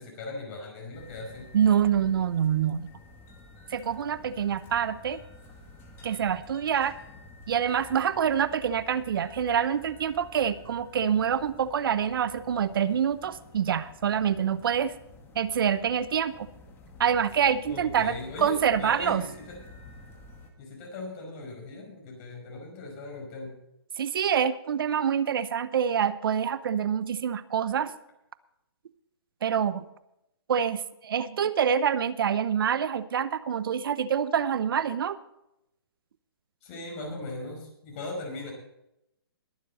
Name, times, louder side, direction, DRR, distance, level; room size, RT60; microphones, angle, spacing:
voice 1, 0.0-1.5 17.7-19.6 20.6-23.6 36.6-38.5, left 2 dB, 35° left, 0 dB, 5.3 m, -39 dB
sound 1, 0.9-20.5, left 2 dB, 15° left, 2.0 m, -50 dB
voice 2, 1.5-2.9 3.7-5.2 6.0-7.0 7.5-14.9 15.3-16.5 17.0-19.2 24.0-27.9 29.4-29.9 30.5-35.2, right 8 dB, 60° right, 15 dB, 0.9 m, -26 dB
21.5 x 7.6 x 4.3 m, 0.83 s
hypercardioid pair, 150°, 13 cm